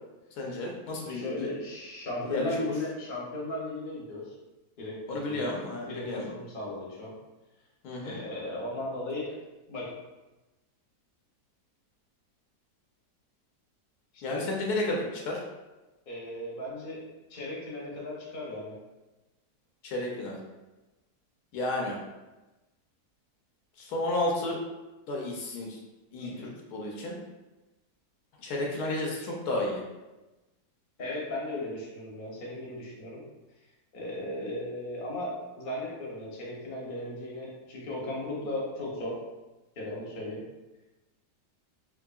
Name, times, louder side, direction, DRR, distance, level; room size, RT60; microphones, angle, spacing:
voice 1, 0.4-1.5 2.2-2.5 5.1-6.3 7.8-8.2 14.2-15.4 19.8-20.4 21.5-22.0 23.8-24.6 25.1-25.8 26.1-27.2 28.4-29.8, left 2 dB, 75° left, -1 dB, 1.2 m, -32 dB
voice 2, 1.1-4.3 4.8-5.5 5.8-7.1 8.0-9.3 9.7-9.9 14.1-14.5 16.1-17.0 17.3-18.7 26.2-26.5 31.0-33.3 33.9-39.2 39.8-40.4, left 1 dB, 40° left, -4 dB, 0.8 m, -36 dB
3.6 x 3.0 x 2.3 m, 1.1 s
omnidirectional pair, 1.7 m